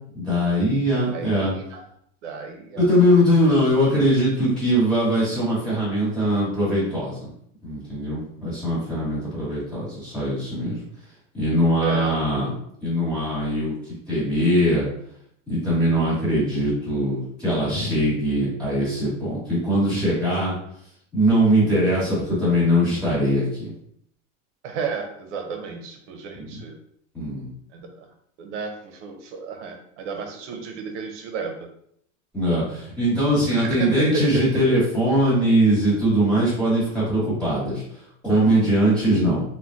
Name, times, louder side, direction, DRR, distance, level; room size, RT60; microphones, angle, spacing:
voice 1, 0.1-1.5 2.7-7.3 7.6-10.8 11.3-12.5 12.8-14.9 15.5-20.5 21.1-23.7 26.3-26.4 27.1-27.5 32.3-39.4, equal, 5° left, -11 dB, 1.2 m, -21 dB
voice 2, 1.0-1.8 2.2-2.9 11.8-12.2 24.6-26.8 27.7-28.1 28.4-31.7 33.5-34.9, right 5 dB, 65° right, 4 dB, 0.7 m, -32 dB
3.6 x 2.2 x 2.5 m, 0.69 s
supercardioid pair, 175°, 38 cm